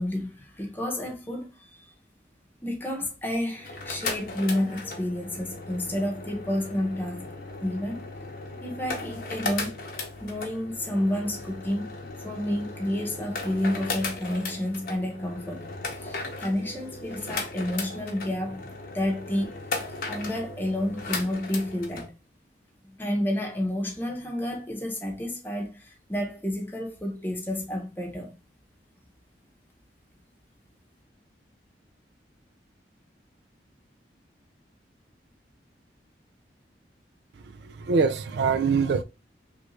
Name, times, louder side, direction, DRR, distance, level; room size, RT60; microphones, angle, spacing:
voice 1, 0.0-1.9 2.6-7.3 7.6-8.0 8.6-9.8 10.2-11.9 12.2-15.7 16.0-18.7 18.9-19.6 20.1-22.1 22.8-28.3, left 1 dB, 10° left, 0.8 m, -30 dB
sound 1, 3.5-22.1, left 3 dB, 50° left, 0.7 m, -36 dB
voice 2, 37.4-39.0, right 5 dB, 70° right, 0.3 m, -24 dB
3.2 x 2.6 x 3.0 m
head